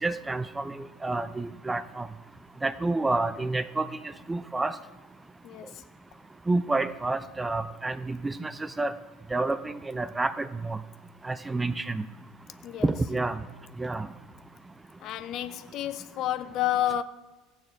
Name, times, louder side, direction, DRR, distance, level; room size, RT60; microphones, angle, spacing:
voice 1, 0.0-2.1 2.6-3.9 4.3-4.7 6.5-8.9 9.3-10.8 11.2-12.1 12.8-13.4 13.8-14.1, right 2 dB, 15° right, 0.6 m, -29 dB
voice 2, 5.4-5.8 12.6-12.9 15.0-17.0, left 12 dB, 50° left, 0.6 m, -30 dB
16.0 x 8.8 x 4.6 m
figure-of-eight pair, 70°, 0 cm